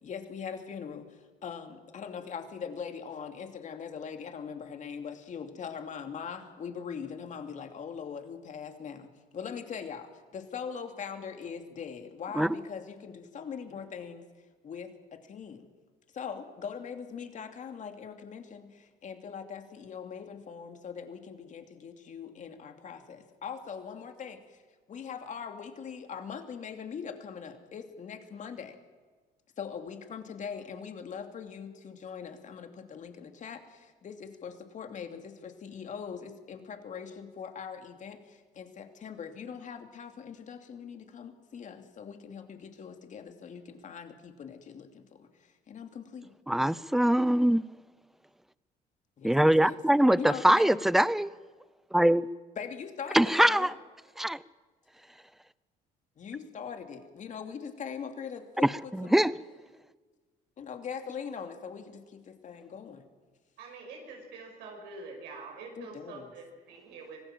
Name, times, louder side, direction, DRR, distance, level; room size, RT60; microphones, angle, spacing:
voice 1, 0.0-14.2 14.6-15.7 16.1-24.6 24.9-28.8 29.6-46.3 49.2-49.8 50.2-50.8 52.5-53.7 56.2-59.2 60.6-63.1 65.8-66.3, left 6 dB, 45° left, 6 dB, 2.8 m, -41 dB
voice 2, 46.5-47.6 49.2-51.4 51.9-52.3 53.1-53.7 54.2-54.4 58.6-59.3, right 1 dB, ahead, 19 dB, 0.6 m, -23 dB
voice 3, 63.6-67.2, right 4 dB, 90° right, 1 dB, 5.6 m, -45 dB
25.5 x 18.0 x 7.6 m, 1.4 s
cardioid pair, 110°, 17 cm